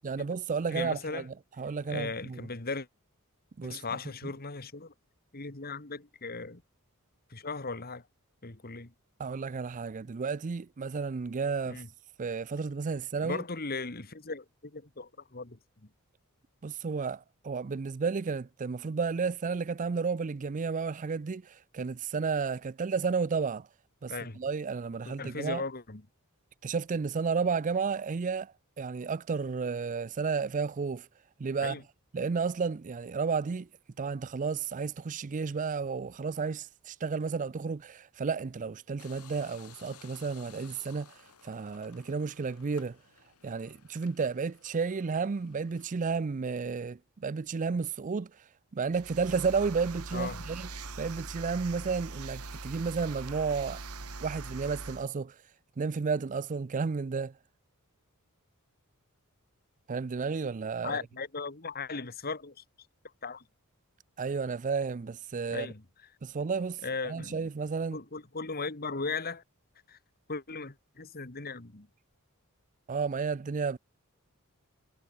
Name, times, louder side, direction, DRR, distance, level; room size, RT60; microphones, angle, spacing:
voice 1, 0.0-2.4 3.6-3.8 9.2-11.8 12.2-13.4 16.6-23.7 24.0-25.6 26.6-31.1 31.4-31.8 32.1-33.7 34.0-43.0 43.4-48.3 48.7-50.7 51.0-53.8 54.2-55.4 55.8-57.3 59.9-61.0 64.2-65.7 66.2-66.8 67.1-68.0 72.9-73.8, right 5 dB, 35° right, 0.4 m, -32 dB
voice 2, 0.7-1.3 1.9-2.9 3.6-4.9 5.3-6.6 7.3-8.0 8.4-8.9 11.7-11.9 13.2-15.6 24.1-24.4 25.1-26.0 31.6-31.8 50.1-50.4 60.8-62.6 63.2-63.4 65.5-65.8 66.8-67.5 67.9-69.4 69.9-70.0 70.3-71.9, left 4 dB, 45° left, 2.0 m, -37 dB
grinding beans, 39.0-46.0, left 7 dB, 90° left, 5.3 m, -57 dB
sound 1, 48.9-55.1, right 3 dB, 85° right, 2.2 m, -42 dB
head